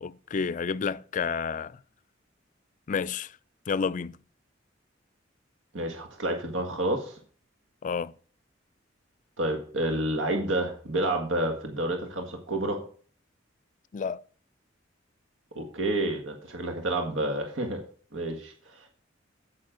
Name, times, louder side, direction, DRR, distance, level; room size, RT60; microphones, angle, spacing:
voice 1, 0.0-1.8 2.9-3.4 3.7-4.2 7.8-8.1 13.9-14.2, left 5 dB, 40° left, 0.4 m, -30 dB
voice 2, 5.7-7.2 9.4-12.8 15.6-17.8 18.1-18.9, right 1 dB, 75° right, 1.6 m, -29 dB
9.6 x 8.5 x 3.8 m
head